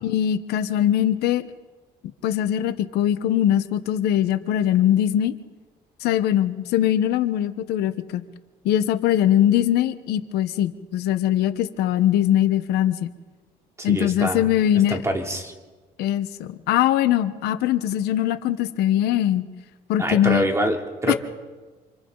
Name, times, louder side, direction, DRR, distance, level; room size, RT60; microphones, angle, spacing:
voice 1, 0.0-1.4 2.2-5.3 6.0-8.2 8.6-13.1 13.8-15.0 16.0-19.4 19.9-20.4 21.1-21.2, left 11 dB, 90° left, 11 dB, 1.1 m, -21 dB
voice 2, 13.8-14.4 14.9-15.5 20.0-21.2, right 1 dB, 15° right, 2 dB, 3.1 m, -25 dB
28.5 x 27.0 x 4.0 m, 1.3 s
cardioid pair, 110°, 16 cm